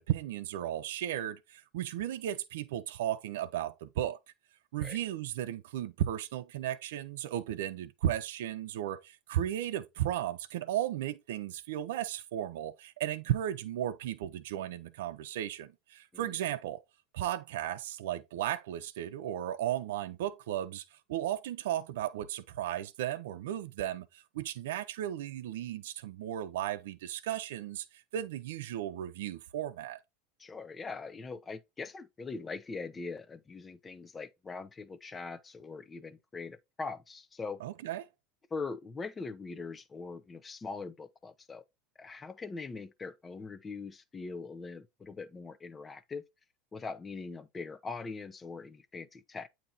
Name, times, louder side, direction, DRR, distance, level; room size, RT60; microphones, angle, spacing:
voice 1, 0.0-4.2 4.7-16.8 17.1-30.0 37.6-38.0, right 12 dB, 85° right, 0.7 m, -35 dB
voice 2, 30.4-37.6 38.5-41.6 42.0-46.2 46.7-49.5, left 4 dB, 15° left, 0.7 m, -42 dB
8.8 x 2.9 x 4.0 m
supercardioid pair, 135°, 0 cm